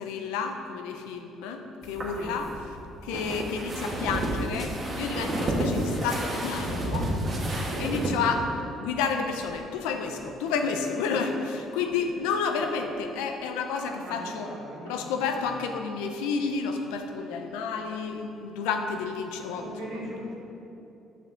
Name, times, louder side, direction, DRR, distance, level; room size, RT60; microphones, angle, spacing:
voice 1, 0.0-2.5 3.0-7.1 7.5-8.5 8.8-14.5 14.9-20.1, left 5 dB, 90° left, 5 dB, 0.5 m, -30 dB
sound 1, 1.8-8.1, right 1 dB, 45° right, 1.3 m, -30 dB
voice 2, 13.8-15.0 19.5-20.3, right 1 dB, 80° right, -5 dB, 1.2 m, -39 dB
6.3 x 5.4 x 3.8 m, 2.9 s
supercardioid pair, 75°, 0 cm